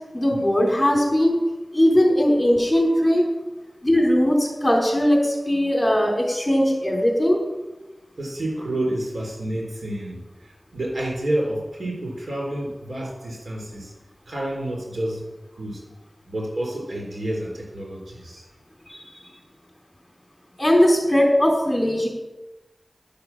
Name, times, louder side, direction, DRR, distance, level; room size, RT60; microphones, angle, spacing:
voice 1, 0.1-1.4 1.7-3.2 3.8-7.4 18.9-19.0 20.6-22.1, equal, 25° left, 0 dB, 3.6 m, -19 dB
voice 2, 8.2-10.2 10.4-13.9 14.3-15.3 15.6-15.8 16.3-18.4, right 1 dB, 80° right, -2 dB, 4.0 m, -29 dB
11.5 x 6.8 x 6.1 m, 1.1 s
cardioid pair, 40°, 0 cm